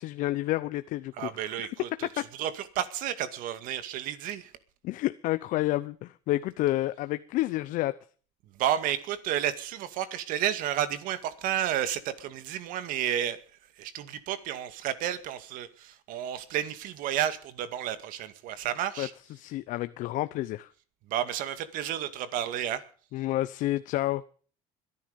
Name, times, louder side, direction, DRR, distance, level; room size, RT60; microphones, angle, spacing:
voice 1, 0.0-1.7 2.2-2.3 4.8-7.9 19.0-20.7 23.1-24.2, left 16 dB, 65° left, 0.8 m, -30 dB
voice 2, 1.2-2.1 2.3-4.5 8.6-13.4 13.8-19.1 21.1-22.8, right 11 dB, 70° right, 2.1 m, -31 dB
22.0 x 11.0 x 5.3 m
cardioid pair, 115°, 15 cm